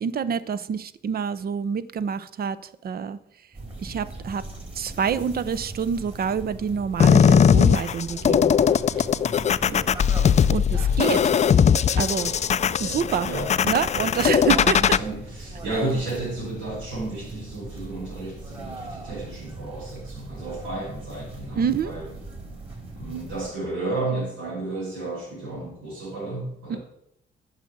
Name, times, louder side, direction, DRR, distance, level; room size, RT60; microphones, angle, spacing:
voice 1, 0.0-2.6 2.8-3.2 3.8-4.4 4.8-8.5 10.5-11.2 12.0-12.3 12.8-13.3 13.6-14.8 21.6-21.9 26.7-26.8, right 7 dB, 50° right, 16 dB, 0.7 m, -27 dB
sound 1, 3.5-23.5, right 2 dB, 30° right, 4.0 m, -39 dB
sound 2, 7.0-15.0, left 8 dB, 35° left, 0.4 m, -19 dB
voice 2, 14.1-22.1 22.9-26.8, right 2 dB, 85° right, -7 dB, 5.2 m, -32 dB
9.1 x 6.5 x 7.8 m, 0.77 s
cardioid pair, 90°, 20 cm